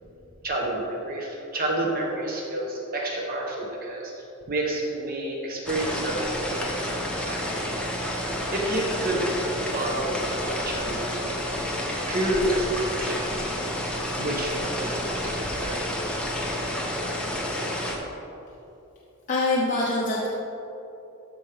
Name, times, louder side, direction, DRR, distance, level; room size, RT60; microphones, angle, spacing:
voice 1, 0.4-4.1 4.5-7.6 8.5-11.4 12.1-16.0 16.4-16.7, right 1 dB, 40° right, -1 dB, 1.0 m, -30 dB
sound 1, 5.7-18.0, left 1 dB, 5° left, 0.8 m, -30 dB
voice 2, 19.3-20.3, left 2 dB, 35° left, -6 dB, 0.9 m, -24 dB
13.0 x 5.3 x 3.4 m, 3.0 s
head